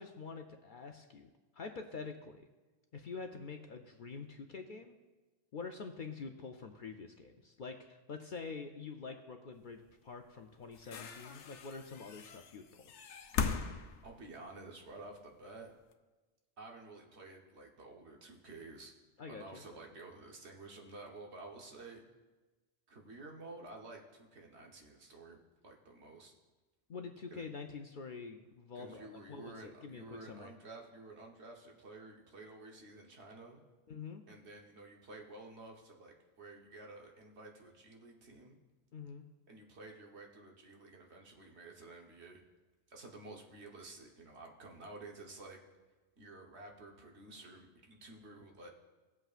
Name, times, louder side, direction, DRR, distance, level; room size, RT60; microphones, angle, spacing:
voice 1, 0.0-2.5 2.9-5.0 5.5-12.8 19.2-19.8 26.9-30.5 33.9-34.2 38.9-39.3, left 4 dB, 55° left, 5 dB, 0.6 m, -46 dB
sound 1, 9.9-10.0 10.6-15.0 15.9-16.0, left 6 dB, 80° left, 0.9 m, -40 dB
voice 2, 14.0-15.7 16.6-18.9 19.3-22.0 22.9-26.3 27.3-27.4 28.7-33.6 34.3-38.5 39.5-42.4 42.9-45.6 46.2-48.7, right 2 dB, 65° right, 0 dB, 1.4 m, -52 dB
17.0 x 7.9 x 2.4 m, 1.2 s
omnidirectional pair, 1.2 m